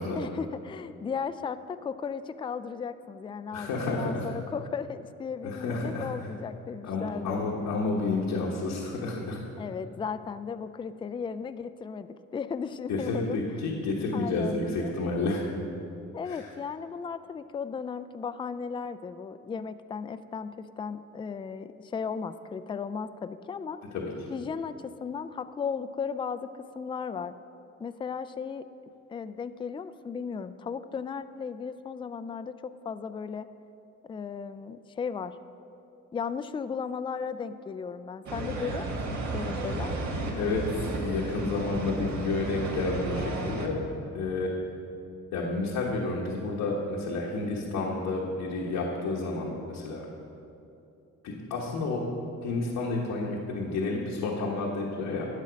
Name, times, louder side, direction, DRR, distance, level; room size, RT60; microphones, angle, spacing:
voice 1, 0.1-7.4 9.6-13.4 14.1-14.9 16.1-23.8 24.3-27.3 27.8-28.6 29.1-33.5 34.0-35.4 36.1-40.0, left 6 dB, 15° left, 12 dB, 0.3 m, -36 dB
voice 2, 3.5-4.3 5.4-6.1 6.8-9.4 12.9-15.4 16.2-16.5 23.9-24.1 40.4-43.8 44.1-44.5 45.3-50.0 51.2-52.0 52.4-55.3, left 3 dB, 85° left, -4 dB, 1.3 m, -30 dB
sound 1, 38.3-43.7, right 2 dB, 70° right, 1.5 m, -33 dB
11.5 x 7.4 x 5.1 m, 2.8 s
cardioid pair, 90°, 30 cm